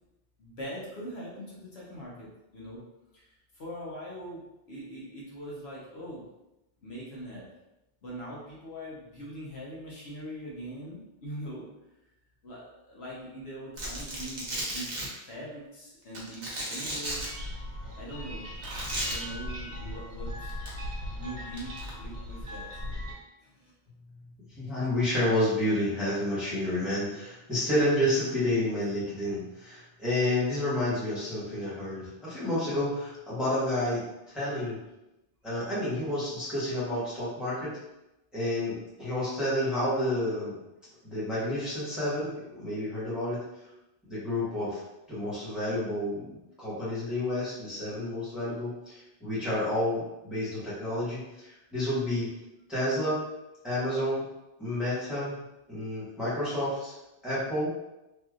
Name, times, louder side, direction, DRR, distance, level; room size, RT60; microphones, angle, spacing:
voice 1, 0.4-2.8 3.1-6.3 6.8-7.4 8.0-11.6 12.4-15.0 15.2-17.3 17.9-18.5 19.0-20.6 21.1-22.7 23.4-23.6, equal, 70° left, -6 dB, 1.1 m, -42 dB
Domestic sounds home sounds, 13.8-15.1 16.1-17.3 18.6-19.1 20.5-20.7 21.6-21.9, right 1 dB, 45° right, 0.8 m, -34 dB
sound 1, 17.0-23.1, left 1 dB, 85° right, 1.1 m, -38 dB
voice 2, 24.6-34.0 34.3-34.8 35.4-37.8 38.3-40.6 41.0-43.4 44.1-44.8 45.1-52.3 52.7-53.2 53.6-54.2 54.6-55.3 55.7-56.9 57.2-57.7, left 1 dB, ahead, -11 dB, 1.1 m, -30 dB
3.2 x 2.6 x 2.4 m, 0.95 s
omnidirectional pair, 1.1 m